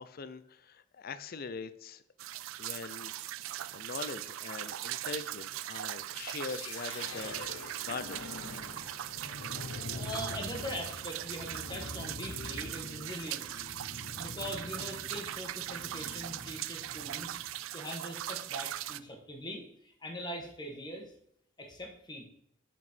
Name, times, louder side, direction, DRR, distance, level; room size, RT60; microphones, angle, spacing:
voice 1, 0.0-2.0 2.6-3.2 3.7-7.5 7.8-8.2, left 4 dB, 50° left, 13 dB, 0.5 m, -42 dB
sound 1, 2.2-19.0, right 13 dB, 85° right, 0.3 m, -40 dB
sound 2, 6.4-17.5, left 3 dB, 70° left, 0.9 m, -45 dB
voice 2, 9.7-13.6 14.2-17.4 17.7-21.1 21.6-22.2, equal, 20° left, 1 dB, 1.4 m, -42 dB
6.1 x 6.1 x 4.4 m, 0.73 s
head